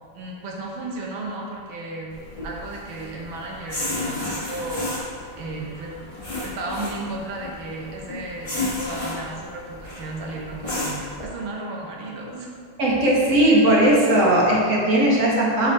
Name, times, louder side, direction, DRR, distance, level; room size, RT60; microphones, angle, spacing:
voice 1, 0.2-2.2 2.4-4.9 5.4-6.0 6.4-12.5, right 2 dB, 75° right, -1 dB, 1.7 m, -34 dB
sound 1, 2.1-11.2, left 2 dB, 20° left, 1.1 m, -33 dB
voice 2, 12.8-15.7, right 1 dB, 45° right, -5 dB, 1.4 m, -18 dB
5.4 x 5.3 x 4.1 m, 2.1 s
omnidirectional pair, 2.2 m